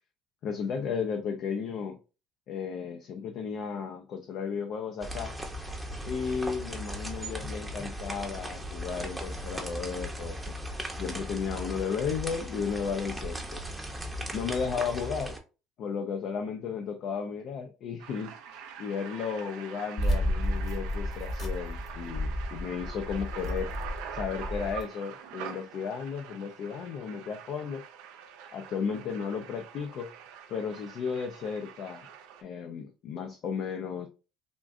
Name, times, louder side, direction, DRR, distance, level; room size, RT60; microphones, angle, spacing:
voice 1, 0.4-2.0 2.5-5.4 6.1-10.6 11.0-13.6 14.3-15.4 15.8-27.9 28.5-30.1 30.5-32.1 32.4-34.1, left 6 dB, 60° left, 0.5 m, -34 dB
sound 1, 5.0-15.4, equal, 5° right, 0.7 m, -37 dB
sound 2, 18.0-32.4, right 8 dB, 85° right, 0.6 m, -45 dB
sound 3, 20.0-24.8, left 1 dB, 40° left, 1.1 m, -32 dB
3.6 x 2.5 x 2.5 m
cardioid pair, 105°, 0 cm